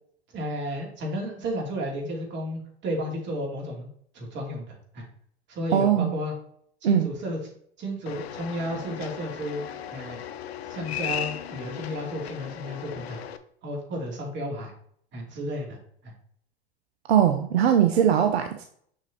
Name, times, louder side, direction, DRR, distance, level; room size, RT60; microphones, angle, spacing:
voice 1, 0.3-3.9 4.1-5.0 5.5-6.3 6.8-7.4 7.8-9.6 9.9-10.2 10.7-13.2 13.6-14.7 15.1-15.8 16.0-16.1, equal, 35° right, 0 dB, 2.8 m, -32 dB
voice 2, 5.7-6.1 6.8-7.1 17.1-18.7, right 9 dB, 75° right, 6 dB, 0.7 m, -20 dB
sound 1, 8.1-13.4, left 10 dB, 75° left, 0.7 m, -36 dB
6.6 x 6.1 x 2.9 m, 0.63 s
hypercardioid pair, 95°, 32 cm